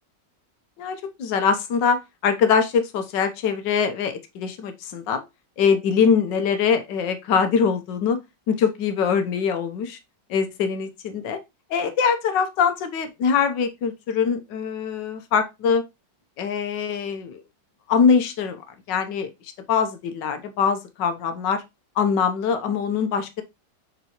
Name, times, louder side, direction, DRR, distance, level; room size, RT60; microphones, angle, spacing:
voice 1, 0.8-5.2 5.6-8.2 8.5-10.0 10.3-11.4 11.7-15.8 16.4-17.4 17.9-18.6 18.9-19.3 19.7-21.6 22.0-23.4, left 6 dB, 75° left, 1.6 m, -23 dB
6.9 x 4.6 x 3.0 m
omnidirectional pair, 2.0 m